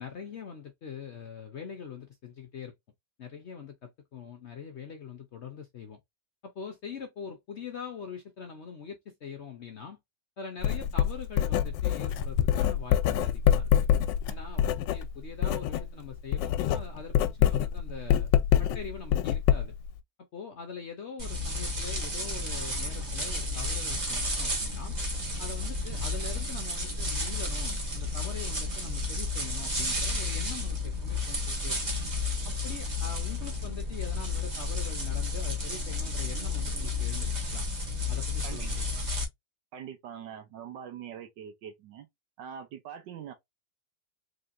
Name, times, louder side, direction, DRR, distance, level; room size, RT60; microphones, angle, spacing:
voice 1, 0.0-2.7 3.2-6.0 6.4-10.0 10.4-13.7 14.3-18.3 18.6-19.7 20.3-25.0 25.4-31.8 32.4-37.7 38.1-39.0, left 6 dB, 65° left, 0.7 m, -43 dB
Writing, 10.6-15.9 16.2-19.9, left 10 dB, 90° left, 1.3 m, -25 dB
sound 1, 21.2-39.2, left 2 dB, 25° right, 1.2 m, -32 dB
voice 2, 39.7-42.1 42.4-43.3, right 8 dB, 80° right, 1.5 m, -43 dB
3.9 x 3.3 x 2.5 m
omnidirectional pair, 1.9 m